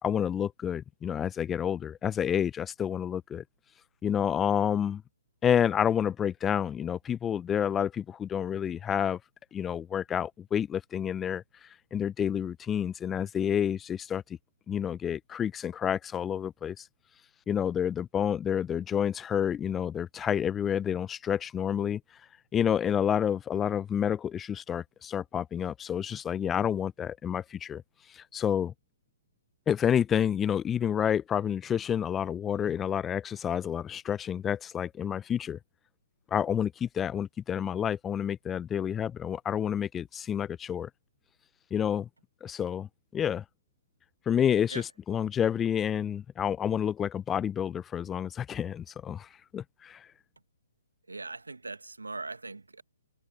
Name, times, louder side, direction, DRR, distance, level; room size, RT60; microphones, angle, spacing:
voice 1, 0.0-3.4 4.0-5.0 5.4-9.2 9.5-11.4 11.9-14.2 14.7-16.8 17.5-22.0 22.5-27.8 28.1-28.7 29.7-35.6 36.3-40.9 41.7-42.1 42.4-43.4 44.3-50.1, left 8 dB, 15° left, 0.9 m, -29 dB
voice 2, 51.1-52.8, right 3 dB, 80° right, 2.1 m, -40 dB
figure-of-eight pair, 130°, 0 cm